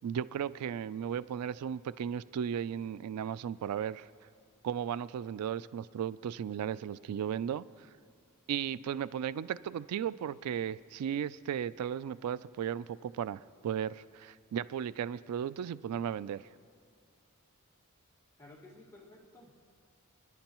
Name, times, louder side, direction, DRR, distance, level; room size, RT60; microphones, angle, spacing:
voice 1, 0.0-4.1 4.6-7.9 8.5-16.4, right 8 dB, 90° right, 17 dB, 0.3 m, -35 dB
voice 2, 18.4-19.5, left 2 dB, 15° left, -3 dB, 1.7 m, -54 dB
28.5 x 10.5 x 3.0 m, 2.3 s
head